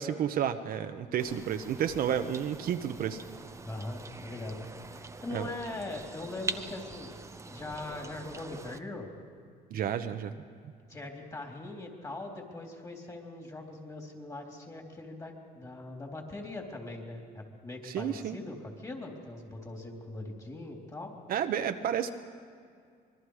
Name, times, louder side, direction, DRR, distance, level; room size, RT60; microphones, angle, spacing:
voice 1, 0.0-3.2 5.3-5.5 9.7-10.3 17.8-18.4 21.3-22.1, right 9 dB, 60° right, 7 dB, 1.0 m, -31 dB
sound 1, 1.2-8.8, right 3 dB, 15° right, 0.9 m, -43 dB
voice 2, 3.6-4.6 4.9-7.1 7.5-9.1 10.9-21.1, left 2 dB, 20° left, 1 dB, 3.7 m, -41 dB
25.5 x 21.5 x 4.9 m, 2.3 s
cardioid pair, 110°, 17 cm